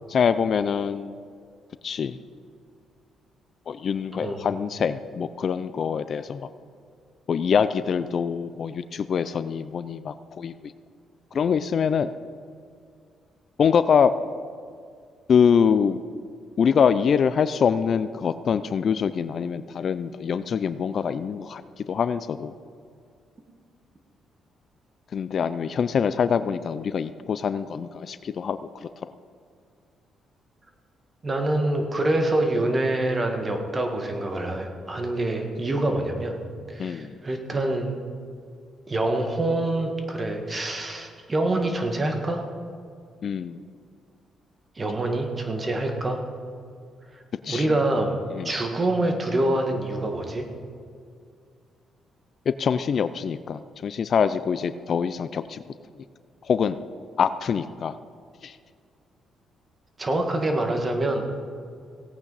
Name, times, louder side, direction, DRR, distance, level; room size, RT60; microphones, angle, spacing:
voice 1, 0.1-1.1 1.8-2.2 3.7-6.5 7.3-10.7 11.3-12.1 13.6-14.1 15.3-16.0 16.6-21.6 21.9-22.5 25.1-28.9 36.8-37.1 43.2-43.6 47.4-47.7 48.3-48.5 52.5-55.6 56.5-56.8 57.2-57.9 58.4-58.5, left 7 dB, 55° left, 13 dB, 0.4 m, -24 dB
voice 2, 4.2-4.5 31.2-36.4 36.7-37.9 38.9-42.4 44.8-46.2 47.5-48.2 48.4-50.5 60.0-61.2, right 2 dB, 30° right, 4 dB, 1.7 m, -25 dB
17.0 x 8.7 x 4.1 m, 2.2 s
cardioid pair, 90°, 0 cm